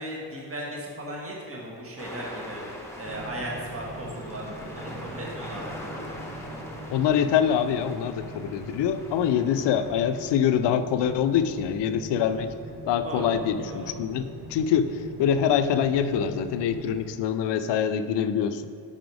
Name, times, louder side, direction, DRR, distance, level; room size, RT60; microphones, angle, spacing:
voice 1, 0.0-2.6 3.0-5.7 13.0-13.3 13.6-13.9, right 1 dB, 30° right, -3 dB, 1.5 m, -36 dB
sound 1, 2.0-10.4, left 1 dB, 5° left, 1.1 m, -42 dB
sound 2, 3.0-17.1, right 1 dB, 75° right, 1.1 m, -42 dB
voice 2, 6.9-12.5 12.9-18.7, left 8 dB, 80° left, 11 dB, 0.5 m, -25 dB
5.6 x 5.1 x 4.7 m, 2.5 s
cardioid pair, 85°, 42 cm